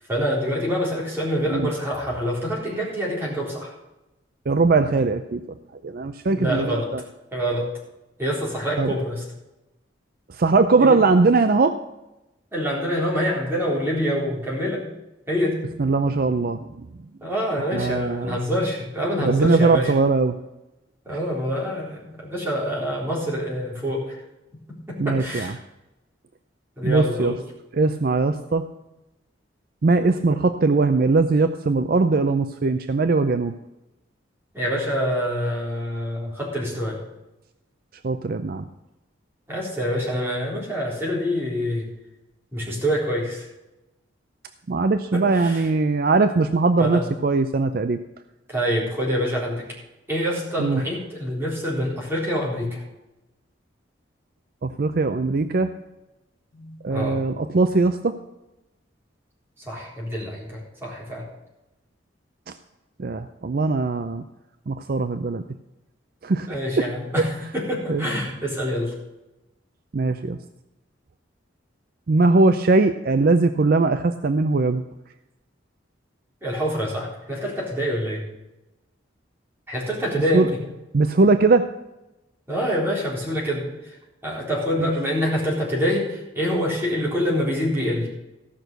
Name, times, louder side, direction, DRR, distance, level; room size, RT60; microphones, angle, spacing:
voice 1, 0.1-3.7 6.3-6.9 7.3-7.7 8.2-9.2 10.8-11.0 12.5-14.8 15.3-15.7 17.2-19.9 21.1-24.2 24.9-25.6 26.8-27.4 34.5-37.0 39.5-41.9 42.5-43.5 45.1-45.6 46.8-47.0 48.5-49.6 50.1-52.8 56.5-57.2 59.6-61.2 66.5-68.9 76.4-78.2 79.7-80.5 82.5-83.6 84.2-88.1, equal, 10° right, -5 dB, 3.8 m, -26 dB
voice 2, 4.5-5.4 5.8-7.0 8.8-8.9 10.3-11.8 15.8-16.7 17.6-18.4 19.2-20.4 25.0-25.5 26.8-27.3 27.7-28.7 29.8-33.5 38.0-38.7 44.7-48.0 50.6-50.8 54.6-55.7 56.8-58.2 62.5-62.6 63.0-64.2 64.7-65.4 66.2-66.8 67.2-67.3 67.9-68.0 69.9-70.4 72.1-74.8 80.3-80.5 80.9-81.7, right 3 dB, 50° right, 9 dB, 0.5 m, -20 dB
15.0 x 6.2 x 6.7 m, 0.97 s
head